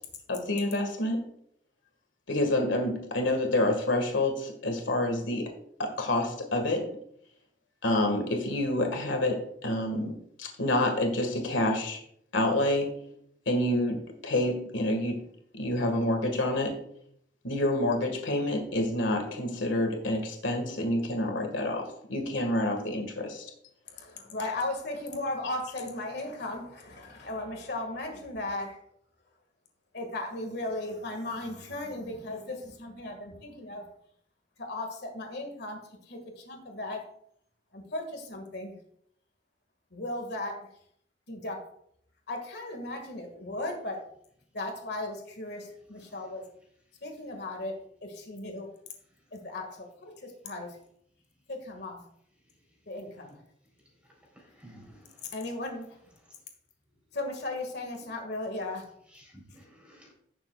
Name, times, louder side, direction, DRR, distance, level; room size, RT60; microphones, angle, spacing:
voice 1, 0.3-1.3 2.3-5.5 5.8-6.9 7.8-12.0 12.3-13.0 13.5-15.2 15.5-16.8 17.4-23.4, left 1 dB, 85° left, 4 dB, 1.8 m, -28 dB
voice 2, 23.9-28.8 29.9-33.8 34.6-35.8 36.1-37.0 37.7-38.7 39.9-40.5 41.3-41.6 42.3-44.0 44.5-46.4 47.0-47.7 48.0-48.7 49.3-50.7 51.5-52.0 52.9-53.4 55.3-55.9 57.1-58.9, left 2 dB, 60° left, 3 dB, 1.9 m, -36 dB
voice 3, 54.4-55.3 59.1-60.1, equal, 5° right, -2 dB, 3.5 m, -53 dB
16.5 x 7.1 x 2.4 m, 0.69 s
head